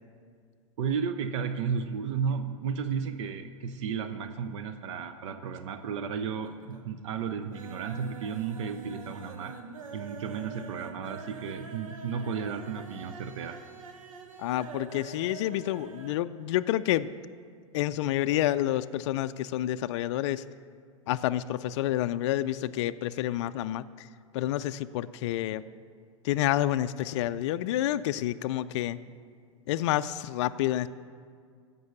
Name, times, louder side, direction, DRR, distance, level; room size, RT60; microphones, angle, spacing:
voice 1, 0.8-9.6 9.9-13.6, right 6 dB, 60° right, 9 dB, 0.7 m, -33 dB
sound 1, 5.5-6.1 6.4-6.9 7.2-16.2 16.5-16.6 16.9-17.0, right 5 dB, 75° right, 1.1 m, -45 dB
voice 2, 14.4-17.1 17.7-20.4 21.1-24.1 24.3-25.6 26.2-29.0 29.7-30.9, left 13 dB, 60° left, 12 dB, 0.4 m, -29 dB
14.5 x 5.4 x 7.1 m, 2.1 s
hypercardioid pair, 100°, 17 cm